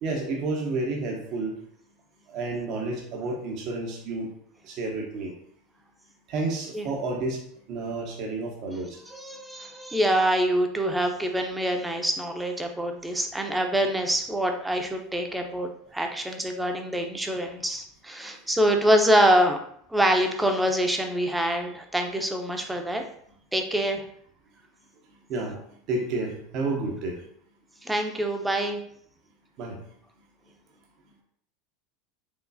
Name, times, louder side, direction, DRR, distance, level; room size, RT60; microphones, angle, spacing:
voice 1, 0.0-1.5 2.3-4.3 4.6-5.3 6.3-7.4 7.7-9.0 25.3-25.6 25.9-27.2 29.6-29.8, right 3 dB, 55° right, 0 dB, 0.9 m, -30 dB
voice 2, 9.1-19.6 19.9-23.0 23.5-24.0 27.8-28.8, right 1 dB, 5° right, 3 dB, 0.7 m, -25 dB
4.9 x 3.0 x 2.7 m, 0.66 s
hypercardioid pair, 85°, 0 cm